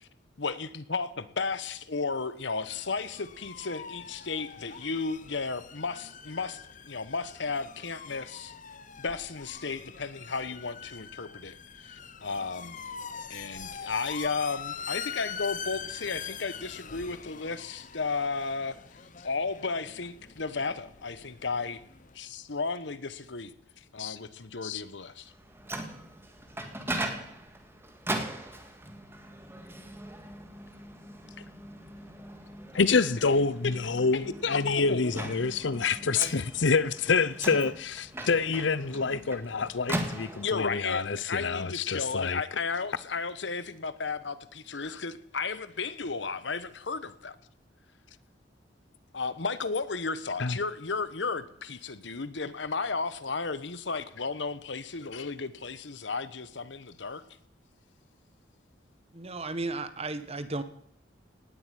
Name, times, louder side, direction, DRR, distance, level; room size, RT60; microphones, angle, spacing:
voice 1, 0.4-6.6 6.9-8.5 9.0-11.5 11.8-12.8 13.3-18.8 19.2-21.8 22.1-23.5 23.9-25.3 31.4-31.5 34.1-35.1 36.2-36.4 40.4-47.4 49.1-57.2, left 4 dB, 75° left, 1.2 m, -34 dB
sound 1, 2.7-22.2, left 6 dB, 45° left, 1.0 m, -43 dB
Microwave oven, 25.3-40.8, right 1 dB, 15° right, 2.0 m, -39 dB
voice 2, 32.7-42.4 44.8-45.0 50.4-50.6 55.1-55.3, left 4 dB, 90° left, 0.8 m, -27 dB
voice 3, 59.1-60.6, right 2 dB, 35° right, 1.3 m, -34 dB
18.5 x 7.9 x 9.3 m
head